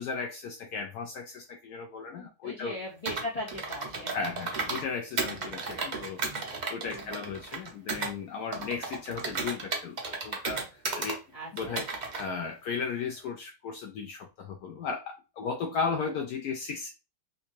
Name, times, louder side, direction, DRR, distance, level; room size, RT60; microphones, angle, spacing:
voice 1, 0.0-2.8 4.1-6.3 6.7-11.2 11.5-11.9 12.2-16.9, left 5 dB, 70° left, 1.0 m, -35 dB
voice 2, 2.2-4.2 5.7-6.2 6.9-7.3 11.3-11.8, left 1 dB, 40° left, 0.5 m, -40 dB
Computer keyboard, 3.0-4.9 5.2-8.1 8.5-11.2 11.6-12.2, right 4 dB, 70° right, 0.4 m, -34 dB
3.5 x 2.7 x 2.9 m
omnidirectional pair, 1.9 m